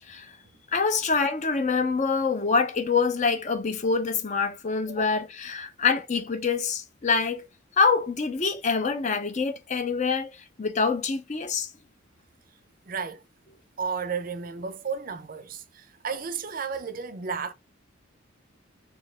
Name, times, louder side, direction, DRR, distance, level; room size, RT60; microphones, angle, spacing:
voice 1, 0.7-7.5 7.8-10.3 10.6-11.7, left 5 dB, 35° left, 0.5 m, -25 dB
voice 2, 12.9-13.2 13.8-17.5, right 5 dB, 45° right, 0.5 m, -33 dB
4.3 x 2.7 x 3.2 m
head